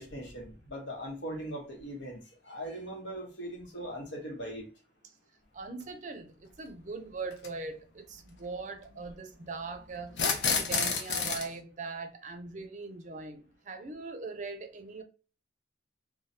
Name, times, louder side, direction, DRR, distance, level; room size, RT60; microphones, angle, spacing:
voice 1, 0.0-4.7, equal, 85° left, 1.1 m, -40 dB
voice 2, 5.5-15.0, right 3 dB, 40° right, 0.5 m, -41 dB
sound 1, 5.8-5.9 7.3-7.5 10.1-11.5, left 5 dB, 70° left, 0.6 m, -29 dB
3.1 x 2.3 x 2.7 m
head